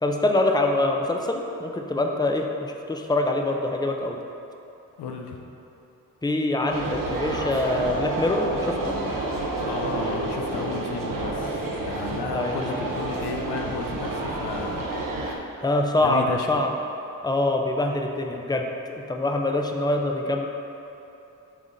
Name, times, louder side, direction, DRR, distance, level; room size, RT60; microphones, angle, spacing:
voice 1, 0.0-4.2 6.2-8.9 12.3-12.6 15.6-16.7 17.2-20.5, left 2 dB, 10° left, 2 dB, 0.7 m, -24 dB
voice 2, 5.0-5.4 9.7-14.9 16.0-16.5, left 5 dB, 90° left, 2 dB, 0.6 m, -33 dB
sound 1, 6.7-15.4, right 2 dB, 60° right, 0.9 m, -29 dB
7.3 x 3.7 x 4.0 m, 2.9 s
supercardioid pair, 40°, 38 cm